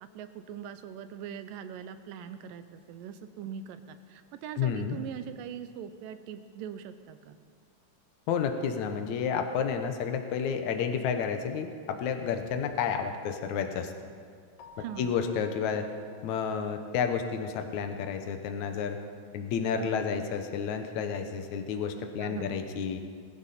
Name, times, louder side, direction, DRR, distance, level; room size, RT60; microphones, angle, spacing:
voice 1, 0.0-7.4 14.8-15.1 22.2-22.6, right 8 dB, 90° right, 10 dB, 2.4 m, -42 dB
voice 2, 4.6-5.0 8.3-13.9 15.0-15.9 16.2-19.0 19.3-23.0, left 6 dB, 70° left, 6 dB, 2.2 m, -31 dB
Keyboard (musical), 14.6-17.0, right 2 dB, 85° left, 3.0 m, -54 dB
20.0 x 14.5 x 4.3 m, 2.1 s
omnidirectional pair, 3.9 m